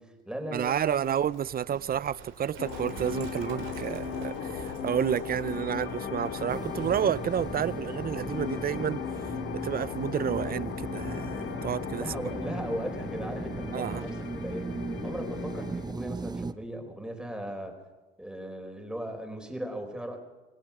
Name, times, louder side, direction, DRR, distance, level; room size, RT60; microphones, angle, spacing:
voice 1, 0.0-1.2 11.9-14.7 15.0-17.7 18.2-20.2, right 1 dB, 5° right, 4.5 m, -38 dB
voice 2, 0.5-9.0 9.5-12.1 13.7-14.0, right 9 dB, 50° right, 0.6 m, -30 dB
Livestock farm animals working animals, 0.6-7.9, right 7 dB, 85° right, 3.3 m, -47 dB
sound 1, 2.6-15.9, left 7 dB, 85° left, 2.4 m, -37 dB
sound 2, 6.5-16.5, right 3 dB, 20° right, 0.9 m, -38 dB
27.5 x 17.0 x 5.9 m
cardioid pair, 90°, 20 cm